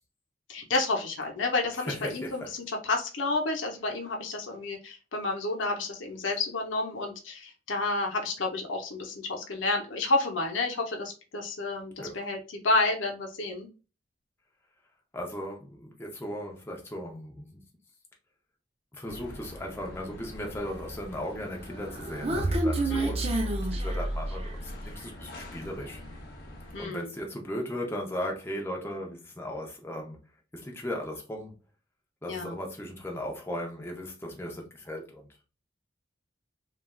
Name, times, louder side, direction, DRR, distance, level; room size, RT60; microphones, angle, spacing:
voice 1, 0.5-13.7 22.9-23.3 26.7-27.1 32.3-32.6, left 2 dB, 90° left, 0.7 m, -30 dB
voice 2, 1.7-2.5 12.0-12.3 15.1-17.6 18.9-26.0 26.8-30.2 30.5-31.6 32.2-35.3, equal, 15° left, 0.6 m, -37 dB
sound 1, 19.1-26.9, left 1 dB, 55° left, 0.7 m, -45 dB
Human voice, 21.7-24.7, right 1 dB, 30° right, 0.5 m, -29 dB
3.1 x 2.4 x 2.2 m
head